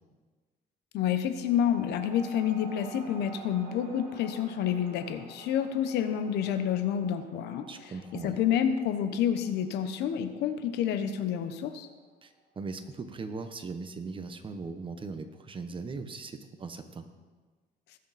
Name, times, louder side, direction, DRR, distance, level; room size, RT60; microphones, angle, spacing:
voice 1, 0.9-7.7 8.2-11.9, left 9 dB, 80° left, 10 dB, 0.9 m, -29 dB
sound 1, 1.4-12.3, right 3 dB, 50° right, 2.9 m, -50 dB
voice 2, 7.7-8.4 12.2-17.0, right 4 dB, 30° right, 8 dB, 1.1 m, -39 dB
19.0 x 6.6 x 4.2 m, 1.4 s
cardioid pair, 110°, 17 cm